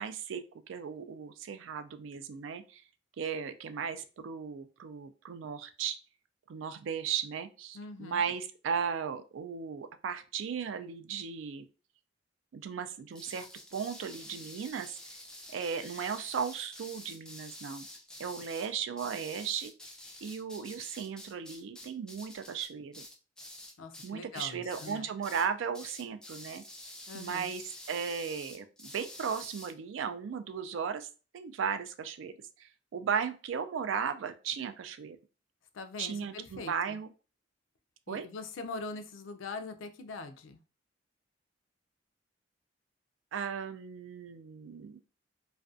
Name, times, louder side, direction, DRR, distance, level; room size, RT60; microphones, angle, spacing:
voice 1, 0.0-2.8 3.2-6.0 6.5-11.7 12.5-15.0 15.5-17.9 18.2-19.7 20.2-23.0 24.0-26.6 27.1-27.6 27.9-31.1 31.3-35.2 36.0-37.1 38.1-38.3 43.3-45.1, right 7 dB, 80° right, 9 dB, 0.3 m, -36 dB
voice 2, 7.7-8.3 23.8-25.1 27.1-27.5 35.7-36.7 38.1-40.6, left 3 dB, 90° left, 8 dB, 0.4 m, -42 dB
sound 1, 13.1-24.1 24.3-25.0 25.2-25.5 25.7-29.7, left 1 dB, 5° left, 0.4 m, -48 dB
2.4 x 2.2 x 2.4 m, 0.34 s
head